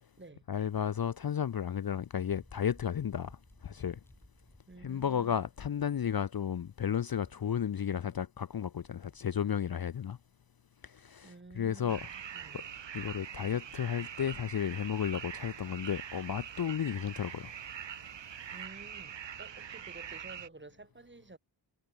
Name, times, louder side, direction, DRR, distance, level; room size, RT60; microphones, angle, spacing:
voice 1, 0.5-3.4 3.6-4.0 4.8-10.2 10.8-12.1 12.5-12.6 12.9-17.5, left 8 dB, 45° left, 0.6 m, -33 dB
sound 1, 2.3-5.8 6.2-9.9 10.3-10.4 10.8-12.0 12.4-12.5 12.9-13.0 13.9-14.4 15.5-15.6 16.4-16.7, left 1 dB, 5° left, 1.9 m, -62 dB
voice 2, 4.7-5.4 7.9-8.1 11.2-12.7 17.3-17.5 18.5-21.4, right 3 dB, 25° right, 2.1 m, -52 dB
sound 2, 11.9-20.5, right 8 dB, 60° right, 1.1 m, -44 dB
wide cardioid pair, 145°, 49 cm